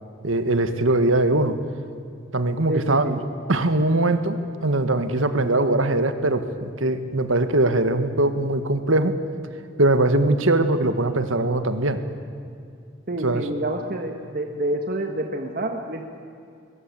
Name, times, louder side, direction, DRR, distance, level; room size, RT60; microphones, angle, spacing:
voice 1, 0.2-1.5 2.3-3.2 3.5-9.1 9.8-12.0 13.2-13.5, right 2 dB, 85° right, 9 dB, 1.7 m, -21 dB
voice 2, 2.7-3.2 13.1-16.0, right 1 dB, 45° right, 3 dB, 1.5 m, -28 dB
22.0 x 21.0 x 8.5 m, 2.5 s
head